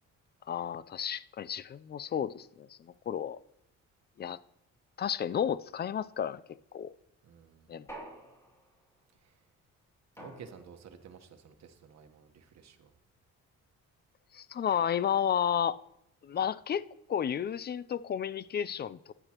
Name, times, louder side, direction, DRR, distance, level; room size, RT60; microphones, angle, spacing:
voice 1, 0.5-3.4 4.2-4.4 5.0-6.4 6.7-6.9 7.7-7.9 14.3-15.8 16.2-16.8 17.1-19.1, left 8 dB, 35° left, 18 dB, 0.4 m, -32 dB
voice 2, 7.2-7.8 9.2-9.3 10.2-12.9, right 7 dB, 60° right, 7 dB, 1.3 m, -53 dB
sound 1, 7.9-8.9 10.2-11.0, right 1 dB, 10° left, 2.8 m, -48 dB
14.5 x 9.9 x 3.0 m, 0.81 s
cardioid pair, 90°, 30 cm